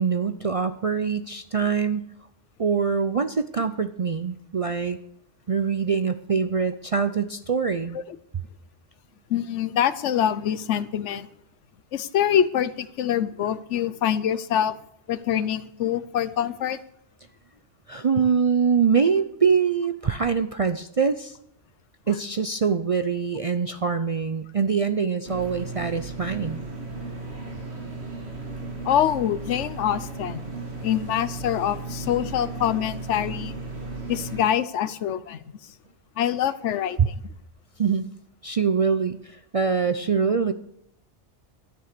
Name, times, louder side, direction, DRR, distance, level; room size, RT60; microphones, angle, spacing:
voice 1, 0.0-2.1 2.6-5.0 5.5-8.0 17.9-21.4 22.1-26.6 37.0-37.1 37.8-38.1 38.4-40.5, right 6 dB, 45° right, 10 dB, 0.4 m, -24 dB
voice 2, 9.3-11.3 11.9-14.8 15.1-16.8 28.8-30.4 30.8-33.5 34.1-35.4 36.2-37.1, left 10 dB, 80° left, 15 dB, 1.0 m, -25 dB
sound 1, 25.2-34.4, right 3 dB, 65° right, 2.5 m, -35 dB
13.0 x 9.7 x 6.7 m, 0.74 s
omnidirectional pair, 1.2 m